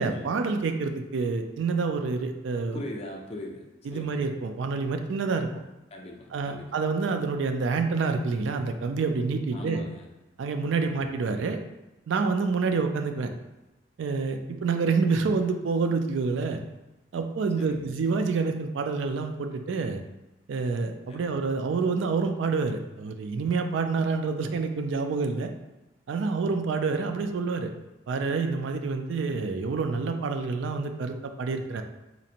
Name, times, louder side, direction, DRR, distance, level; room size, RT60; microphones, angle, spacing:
voice 1, 0.0-2.8 3.9-5.5 6.3-9.8 10.4-11.6 12.1-13.3 14.0-16.6 17.1-20.0 20.5-25.5 26.1-27.7 28.1-31.8, right 4 dB, 75° right, 6 dB, 0.3 m, -27 dB
voice 2, 2.7-4.2 5.9-6.8 9.5-10.1 10.8-11.1 17.6-18.0 21.1-21.4, left 1 dB, 30° left, 1 dB, 0.4 m, -41 dB
4.0 x 2.5 x 2.8 m, 0.98 s
head